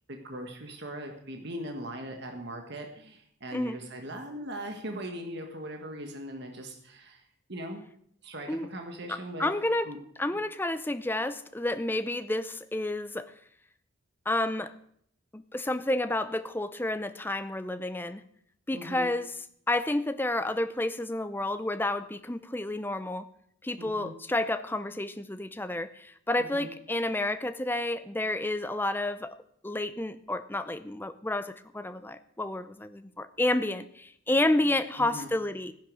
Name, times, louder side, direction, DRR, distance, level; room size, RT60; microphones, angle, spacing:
voice 1, 0.1-7.8 8.2-9.5 9.8-10.0 10.3-10.4 18.7-19.1 23.8-24.1 26.4-26.7 35.0-35.3, right 1 dB, 50° right, 3 dB, 1.5 m, -40 dB
voice 2, 9.1-9.9 10.2-13.3 14.3-14.7 15.3-18.2 18.7-19.3 19.7-23.3 23.6-29.4 29.6-35.7, left 1 dB, 10° left, 11 dB, 0.6 m, -30 dB
14.5 x 10.5 x 6.3 m, 0.67 s
head